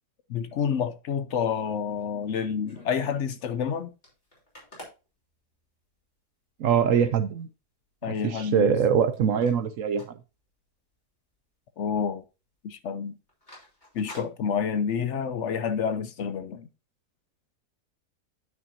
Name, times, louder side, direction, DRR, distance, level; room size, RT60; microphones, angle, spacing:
voice 1, 0.3-3.9 8.0-8.8 11.8-12.2 12.6-13.1 13.9-16.7, left 7 dB, 65° left, 0.8 m, -29 dB
sound 1, 1.8-3.2 3.6-3.7 3.9-6.0 6.5-6.6 7.0-7.4 7.8-8.8 9.1-10.9 11.2-11.4 11.7-12.2 12.4-12.6 13.1-15.1, left 1 dB, 25° left, 3.5 m, -50 dB
voice 2, 6.6-7.5 8.1-10.2, right 7 dB, 65° right, 0.9 m, -23 dB
9.4 x 5.9 x 2.7 m
omnidirectional pair, 1.7 m